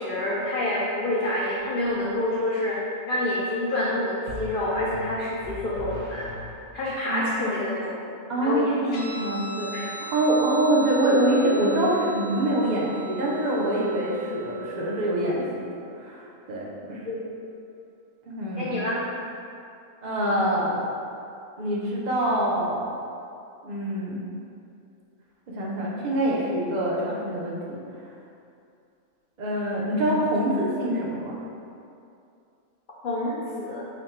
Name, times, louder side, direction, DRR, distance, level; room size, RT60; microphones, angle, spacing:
voice 1, 0.0-2.8 3.1-6.3 6.7-7.9 8.4-8.7 9.7-9.8 16.9-17.2 18.6-19.0 33.0-33.9, left 1 dB, 85° left, -6 dB, 0.4 m, -27 dB
sound 1, 1.6-2.1 4.3-6.9, left 1 dB, 85° right, 1.4 m, -40 dB
voice 2, 7.1-7.4 8.3-15.7 16.0-17.0 18.3-18.8 20.0-20.8 21.6-22.8 23.6-24.2 25.5-27.8 29.4-31.4, right 1 dB, 65° right, -5 dB, 0.4 m, -25 dB
Guitar, 8.9-15.8, right 4 dB, 70° left, 1.0 m, -39 dB
4.1 x 2.1 x 4.3 m, 2.6 s
omnidirectional pair, 1.5 m